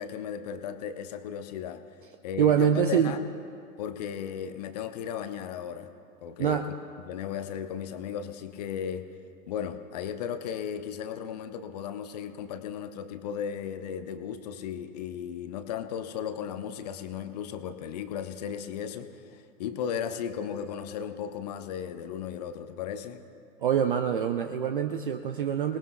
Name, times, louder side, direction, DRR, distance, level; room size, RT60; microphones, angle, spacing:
voice 1, 0.0-1.8 2.2-3.3 3.8-5.9 6.2-6.7 7.1-9.1 9.5-23.2, left 8 dB, 25° left, 10 dB, 0.6 m, -35 dB
voice 2, 2.4-3.2 6.4-6.7 23.6-25.8, right 8 dB, 35° right, 8 dB, 0.5 m, -25 dB
27.5 x 19.5 x 2.2 m, 2.4 s
figure-of-eight pair, 110°, 47 cm